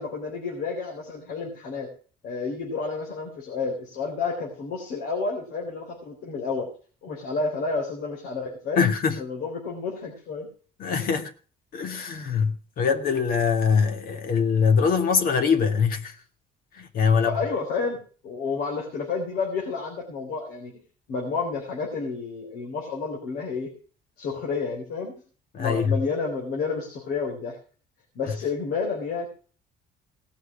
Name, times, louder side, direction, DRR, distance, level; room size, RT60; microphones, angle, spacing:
voice 1, 0.0-1.9 2.2-6.7 7.0-8.9 9.2-10.5 17.1-18.0 18.2-20.7 21.1-23.7 24.2-25.1 25.6-27.6 28.2-29.3, left 4 dB, 75° left, 3.8 m, -30 dB
voice 2, 8.8-9.2 10.8-11.3 11.7-16.2 16.7-17.4 25.5-26.0, left 6 dB, 60° left, 1.9 m, -23 dB
18.0 x 6.3 x 6.2 m
cardioid pair, 110°, 17 cm